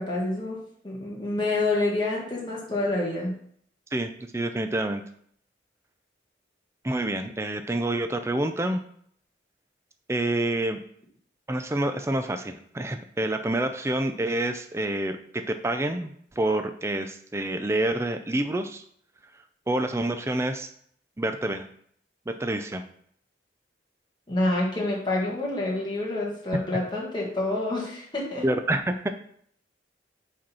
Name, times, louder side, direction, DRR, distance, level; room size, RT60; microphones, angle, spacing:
voice 1, 0.0-3.4 24.3-28.4, left 2 dB, 25° left, -4 dB, 1.6 m, -28 dB
voice 2, 3.9-5.0 6.8-8.8 10.1-10.8 11.5-18.8 19.7-20.7 21.2-21.7 22.3-22.9 28.4-29.1, right 1 dB, 15° right, 7 dB, 0.4 m, -27 dB
5.1 x 4.4 x 5.5 m, 0.64 s
head